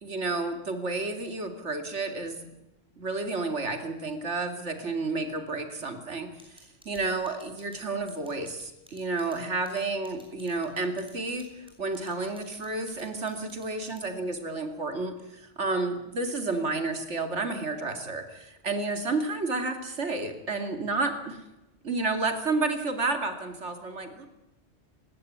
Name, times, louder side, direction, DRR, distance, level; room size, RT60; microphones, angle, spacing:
voice 1, 0.0-2.5 3.0-21.4 21.8-24.3, right 3 dB, 90° right, 6 dB, 2.7 m, -31 dB
sound 1, 6.4-14.3, equal, 5° right, 6.2 m, -55 dB
20.0 x 16.5 x 9.4 m, 0.99 s
omnidirectional pair, 1.2 m